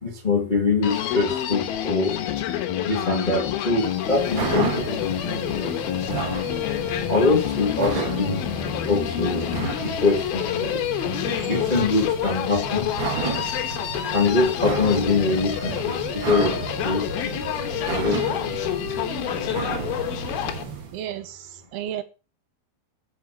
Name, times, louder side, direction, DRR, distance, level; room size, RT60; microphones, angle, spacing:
voice 1, 0.0-2.2 2.8-5.7 7.1-8.4 8.9-10.8 11.5-12.9 14.1-16.6 16.8-18.5, left 3 dB, 25° left, 1.0 m, -24 dB
Human voice, 0.8-20.6, left 11 dB, 80° left, 3.0 m, -28 dB
sound 1, 3.8-21.0, right 5 dB, 50° right, 1.5 m, -32 dB
voice 2, 20.9-22.0, right 11 dB, 85° right, 3.1 m, -33 dB
9.4 x 6.7 x 6.8 m
omnidirectional pair, 4.4 m